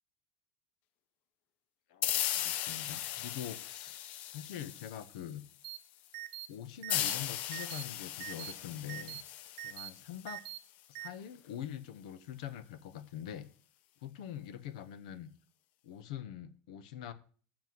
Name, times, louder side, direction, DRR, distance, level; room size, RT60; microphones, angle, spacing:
voice 1, 1.9-4.0 4.3-5.5 6.5-9.2 9.6-10.4 10.9-13.5 14.0-15.3 15.8-17.1, left 10 dB, 85° left, 14 dB, 0.9 m, -44 dB
sound 1, 2.0-5.4 6.9-10.4, left 12 dB, 40° left, 0.5 m, -37 dB
sound 2, 5.6-5.8 6.1-6.5 6.8-7.2 7.5-7.8 8.2-8.5 8.9-9.2 9.6-9.9 10.3-10.6 11.0-11.1, right 16 dB, 80° right, 0.6 m, -42 dB
6.9 x 5.9 x 7.5 m, 0.42 s
cardioid pair, 180°, 4 cm